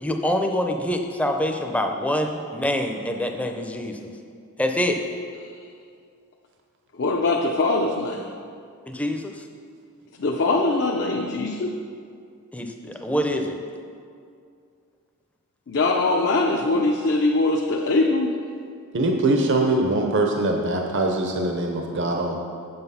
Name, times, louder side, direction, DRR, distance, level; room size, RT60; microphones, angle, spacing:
voice 1, 0.0-4.1 4.6-5.0 8.9-9.3 12.5-13.6, left 1 dB, 5° left, 4 dB, 0.5 m, -25 dB
voice 2, 7.0-8.3 10.2-11.8 15.7-18.3, left 2 dB, 55° left, 1 dB, 0.6 m, -22 dB
voice 3, 18.9-22.4, right 2 dB, 55° right, 2 dB, 0.7 m, -22 dB
7.9 x 7.6 x 5.6 m, 2.3 s
head